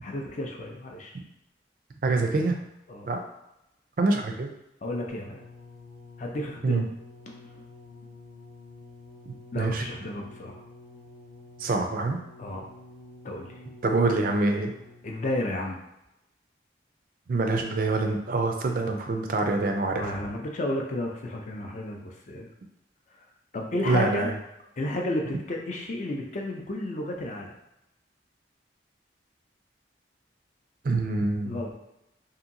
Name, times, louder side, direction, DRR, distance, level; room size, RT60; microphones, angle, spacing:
voice 1, 0.0-1.1 2.9-3.1 4.8-5.4 6.2-6.8 7.3-7.6 9.5-10.6 12.4-12.7 13.2-13.6 15.0-15.8 19.9-22.5 23.5-24.3 24.8-27.5 31.4-31.7, left 1 dB, 40° left, 1 dB, 0.4 m, -32 dB
voice 2, 2.0-2.6 3.1-3.2 4.0-4.5 6.6-6.8 9.5-9.9 11.6-12.2 13.8-14.7 17.3-20.1 23.8-24.3 30.8-31.6, right 3 dB, 50° right, 4 dB, 0.4 m, -25 dB
sound 1, 5.1-15.2 16.0-16.1, left 2 dB, 75° left, 0.7 m, -49 dB
2.8 x 2.6 x 2.6 m, 0.86 s
head